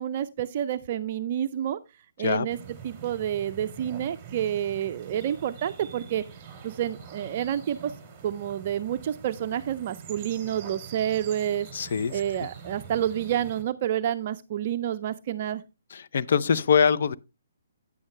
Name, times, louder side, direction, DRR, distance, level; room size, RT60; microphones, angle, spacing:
voice 1, 0.0-1.8 2.2-2.6 2.8-6.2 6.6-7.9 8.2-11.7 12.1-15.6, right 10 dB, 40° right, 0.5 m, -29 dB
sound 1, 2.5-13.6, right 7 dB, 20° right, 2.8 m, -44 dB
voice 2, 11.7-12.5 15.9-17.2, left 6 dB, 60° left, 0.6 m, -24 dB
9.7 x 8.6 x 3.2 m
hypercardioid pair, 150°, 0 cm